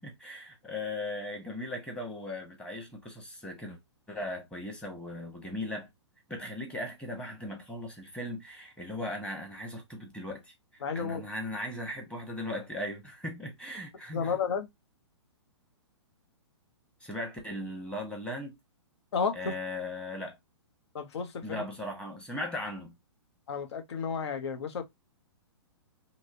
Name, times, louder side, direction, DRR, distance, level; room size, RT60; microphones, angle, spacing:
voice 1, 0.0-3.8 4.1-5.9 6.3-14.4 17.0-18.6 19.3-20.4 21.4-22.9, left 1 dB, 5° left, 1.1 m, -38 dB
voice 2, 10.8-11.2 14.1-14.7 19.1-19.6 20.9-21.6 23.5-24.8, left 6 dB, 65° left, 0.9 m, -32 dB
3.0 x 2.7 x 2.6 m
hypercardioid pair, 125°, 15 cm